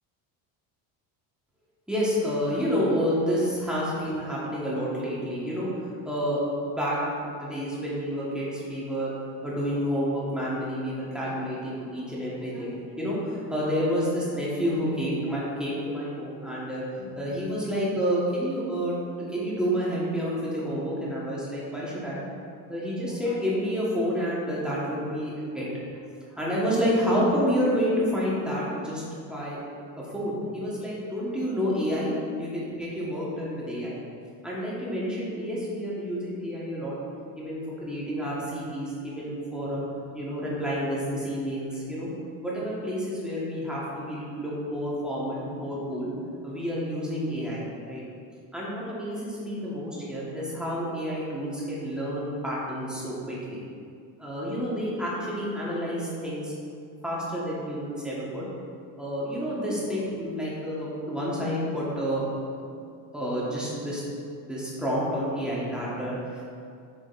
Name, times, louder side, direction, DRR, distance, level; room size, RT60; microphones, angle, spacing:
voice 1, 1.9-5.7 6.0-9.1 9.4-22.2 22.7-25.7 26.3-29.7 30.1-34.0 34.4-36.9 37.4-39.8 40.1-42.1 42.4-46.1 46.4-48.0 48.5-53.6 54.2-56.5 57.0-58.5 59.0-62.7 63.1-64.0 64.4-66.4, equal, ahead, -7 dB, 1.3 m, -29 dB
7.6 x 5.0 x 2.5 m, 2.3 s
cardioid pair, 140°, 44 cm